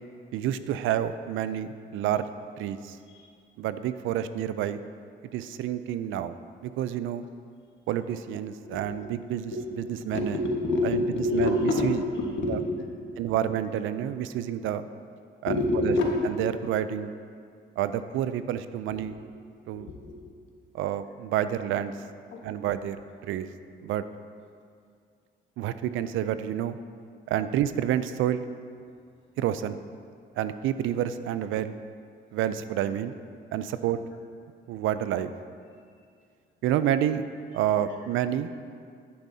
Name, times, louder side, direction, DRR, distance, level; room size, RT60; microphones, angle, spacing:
voice 1, 0.3-2.3 2.6-3.0 3.6-4.8 5.3-6.3 6.6-7.3 7.9-9.5 10.1-10.4 10.8-11.0 11.3-11.6 11.8-12.0 12.5-12.6 13.2-14.8 15.4-15.6 15.8-15.9 16.2-17.1 17.8-19.1 19.7-19.9 20.7-21.9 22.4-23.0 23.2-23.5 23.8-24.0 25.6-26.8 27.3-28.4 29.4-29.8 30.4-31.8 32.3-33.1 33.5-34.0 34.7-35.3 36.6-37.2 37.5-38.5, right 11 dB, 85° right, 13 dB, 0.4 m, -28 dB
voice 2, 8.6-12.9 15.4-16.1 18.9-19.0 19.7-20.2 22.3-22.4 37.9-38.0, left 2 dB, 70° left, -1 dB, 1.5 m, -28 dB
10.0 x 8.4 x 2.7 m, 2.2 s
cardioid pair, 90°, 20 cm